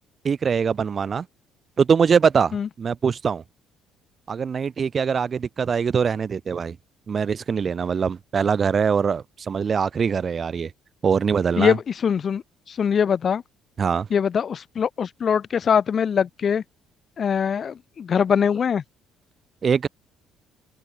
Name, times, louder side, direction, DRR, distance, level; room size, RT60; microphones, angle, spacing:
voice 1, 0.2-1.2 1.8-3.4 4.3-6.8 7.1-10.7 11.0-11.8 13.8-14.1 19.6-19.9, right 6 dB, 25° right, 3.0 m, -22 dB
voice 2, 11.6-12.4 12.7-13.4 14.1-16.6 17.2-18.8, left 7 dB, 30° left, 5.3 m, -22 dB
open air
cardioid pair, 170°, 0 cm